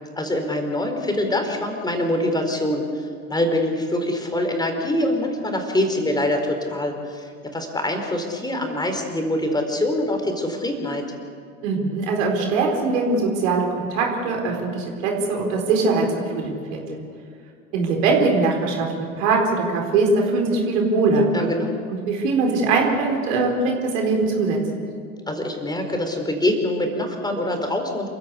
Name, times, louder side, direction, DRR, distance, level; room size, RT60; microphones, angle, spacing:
voice 1, 0.2-11.0 21.3-21.8 25.3-28.1, left 1 dB, 10° left, 4 dB, 4.3 m, -24 dB
voice 2, 11.6-16.1 16.3-17.0 17.7-21.3 22.1-24.6, right 3 dB, 60° right, 1 dB, 4.5 m, -21 dB
28.5 x 15.0 x 8.4 m, 2.2 s
figure-of-eight pair, 80°, 43 cm